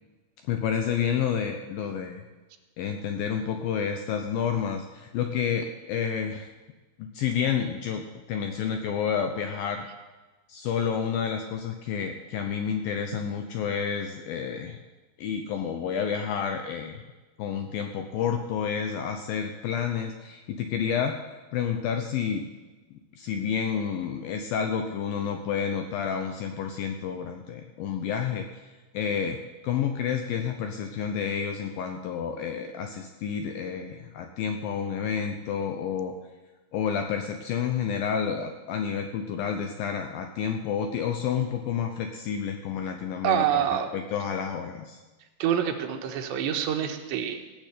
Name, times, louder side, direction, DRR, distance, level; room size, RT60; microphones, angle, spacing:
voice 1, 0.4-2.2 2.8-6.5 7.0-9.8 10.5-14.8 15.2-17.0 17.4-21.2 21.5-22.5 23.2-29.4 29.6-36.1 36.7-43.7 43.9-45.0, left 7 dB, 80° left, 5 dB, 2.1 m, -30 dB
voice 2, 43.2-43.9 45.4-47.5, right 9 dB, 85° right, 4 dB, 3.3 m, -26 dB
16.5 x 6.5 x 8.3 m, 1.2 s
omnidirectional pair, 5.0 m